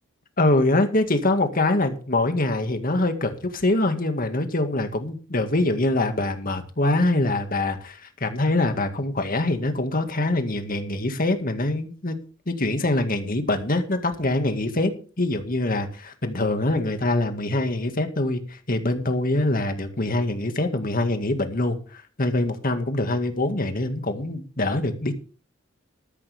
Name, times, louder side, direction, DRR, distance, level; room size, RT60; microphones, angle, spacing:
voice 1, 0.4-12.2 12.5-14.9 15.2-25.1, left 2 dB, 45° left, 7 dB, 2.0 m, -24 dB
14.0 x 13.0 x 3.6 m, 0.39 s
head